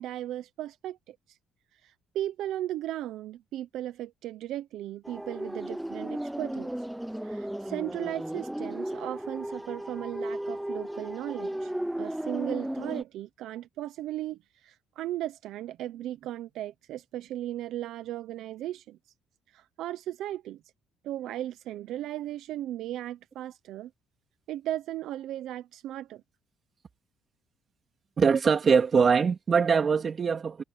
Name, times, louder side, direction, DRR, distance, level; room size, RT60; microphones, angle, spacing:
voice 1, 0.0-1.4 1.7-6.7 7.2-19.0 19.5-20.6 21.0-23.9 24.5-26.2, right 13 dB, 70° right, 0.7 m, -36 dB
sound 1, 5.0-13.0, right 1 dB, 5° right, 0.6 m, -35 dB
voice 2, 28.2-30.6, right 6 dB, 35° right, 2.9 m, -22 dB
cardioid pair, 130°, 0 cm